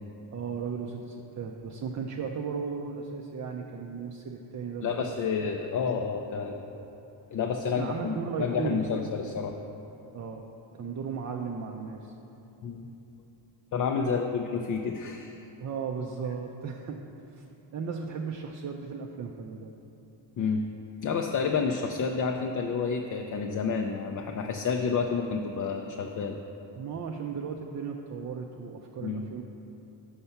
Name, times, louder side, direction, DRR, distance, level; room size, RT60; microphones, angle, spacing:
voice 1, 0.3-5.1 6.7-6.9 7.8-9.0 10.1-10.5 10.7-12.1 14.1-14.2 15.6-17.0 17.4-17.5 17.7-19.7 26.8-29.4, right 5 dB, 40° right, 1 dB, 0.4 m, -36 dB
voice 2, 4.8-6.6 7.3-9.6 12.6-12.9 13.7-15.5 20.4-20.6 21.0-26.4 29.0-29.3, left 5 dB, 45° left, 3 dB, 0.4 m, -30 dB
5.7 x 5.4 x 5.6 m, 2.9 s
cardioid pair, 95°, 48 cm